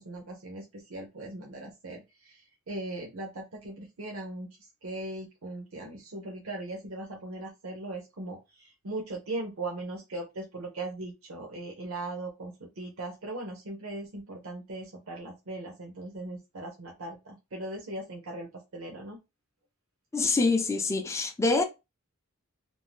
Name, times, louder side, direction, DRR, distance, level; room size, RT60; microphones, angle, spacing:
voice 1, 0.0-19.2, right 2 dB, 70° right, 0.7 m, -39 dB
voice 2, 20.1-21.6, left 3 dB, 15° left, 0.3 m, -25 dB
2.6 x 2.0 x 3.1 m
head